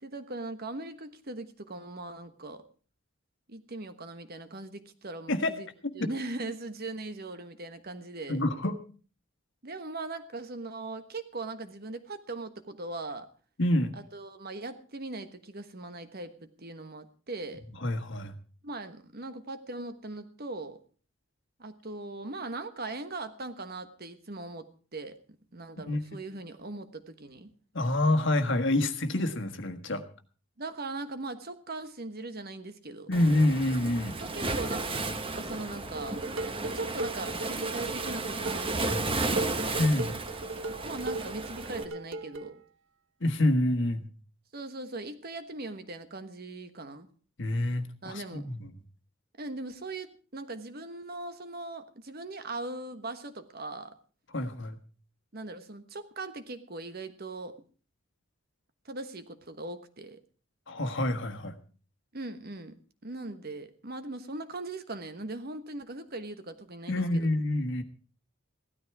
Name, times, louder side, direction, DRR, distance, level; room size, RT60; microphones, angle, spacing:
voice 1, 0.0-2.6 3.5-5.7 5.9-8.4 9.6-13.3 13.9-17.6 18.6-20.8 21.6-25.1 25.5-27.5 28.8-28.9 30.6-33.1 34.2-34.8 35.3-36.2 36.6-39.6 40.8-42.6 44.5-47.1 48.0-48.5 49.4-53.9 55.3-57.6 58.8-60.2 62.1-67.3, right 2 dB, 45° right, 10 dB, 1.3 m, -40 dB
voice 2, 8.3-8.8 13.6-13.9 17.8-18.3 25.9-26.0 27.7-30.0 33.1-34.2 39.8-40.2 43.2-44.1 47.4-48.7 54.3-54.8 60.7-61.5 66.9-67.8, left 1 dB, 60° left, 7 dB, 1.5 m, -27 dB
Waves surf, 33.1-41.8, right 2 dB, 25° right, 1.1 m, -34 dB
Dishes pots and pans, 35.9-42.6, right 2 dB, 65° right, 1.0 m, -38 dB
16.0 x 13.0 x 4.7 m, 0.39 s
head